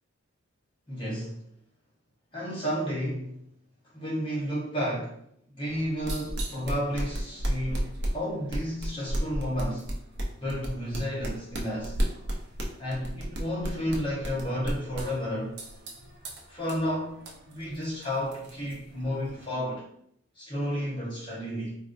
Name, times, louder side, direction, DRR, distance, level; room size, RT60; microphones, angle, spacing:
voice 1, 0.9-1.4 2.3-3.5 3.9-5.2 5.5-9.9 10.4-12.0 12.8-15.6 16.5-19.9 20.4-21.8, equal, 25° left, 1.0 m, -32 dB
sound 1, 5.7-19.5, equal, 50° right, 0.5 m, -35 dB
3.8 x 2.0 x 2.5 m
head